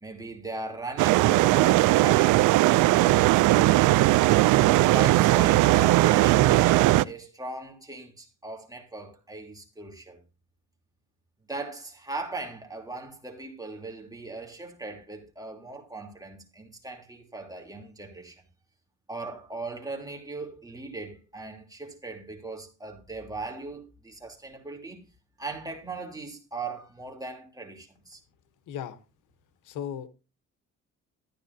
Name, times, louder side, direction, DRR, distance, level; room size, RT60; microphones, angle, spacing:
voice 1, 0.0-4.0 4.8-10.2 11.5-18.4 19.1-25.0 25.4-28.2, right 2 dB, 10° right, 3.2 m, -39 dB
sound 1, 1.0-7.0, right 17 dB, 85° right, 0.4 m, -19 dB
voice 2, 28.7-29.0 29.6-30.1, left 9 dB, 85° left, 1.0 m, -35 dB
13.5 x 10.0 x 2.7 m
cardioid pair, 90°, 30 cm